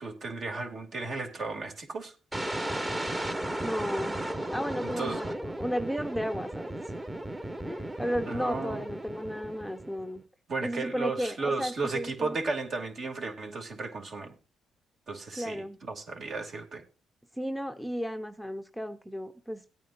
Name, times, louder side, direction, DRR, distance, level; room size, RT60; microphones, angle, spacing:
voice 1, 0.0-2.1 4.8-5.2 8.3-8.8 10.5-14.3 15.1-16.8, right 3 dB, 55° right, 2.8 m, -34 dB
sound 1, 2.3-10.2, right 1 dB, 15° right, 1.3 m, -35 dB
voice 2, 3.6-4.2 4.5-6.8 7.6-10.2 10.6-12.4 15.4-15.8 17.4-19.6, equal, ahead, 0.8 m, -34 dB
18.5 x 9.1 x 2.6 m
cardioid pair, 90°, 0 cm